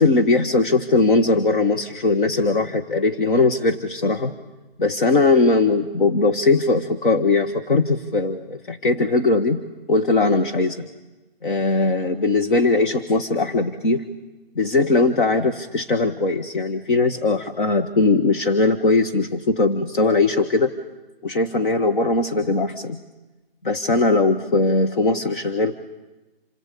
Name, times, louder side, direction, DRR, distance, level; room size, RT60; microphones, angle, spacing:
voice 1, 0.0-4.3 4.8-9.6 9.9-10.8 11.4-14.1 14.5-20.7 21.2-23.0 23.6-25.8, left 3 dB, 55° left, 6 dB, 1.7 m, -20 dB
28.0 x 22.5 x 8.6 m, 1.1 s
hypercardioid pair, 165°, 30 cm